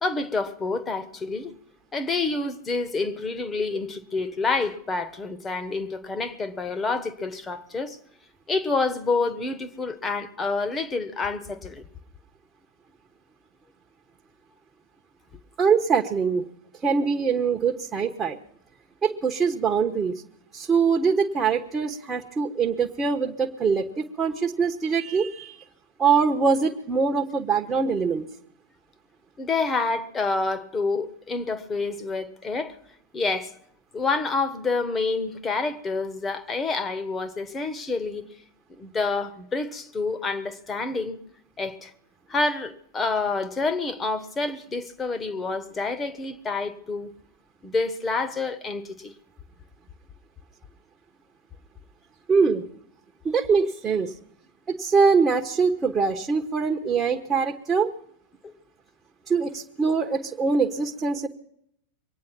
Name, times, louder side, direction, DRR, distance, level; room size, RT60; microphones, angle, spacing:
voice 1, 0.0-1.5 1.9-8.0 8.5-11.8 29.4-32.8 33.1-33.5 33.9-38.3 38.8-41.2 41.6-41.9 42.3-47.1 47.6-49.1 58.4-58.5, left 3 dB, 20° left, 1.3 m, -28 dB
voice 2, 15.6-16.4 16.8-18.4 19.0-20.1 20.5-25.6 26.0-28.2 52.3-52.6 53.2-54.1 54.7-57.9 59.3-61.3, right 5 dB, 20° right, 1.2 m, -23 dB
23.5 x 9.4 x 5.9 m
figure-of-eight pair, 90°, 0 cm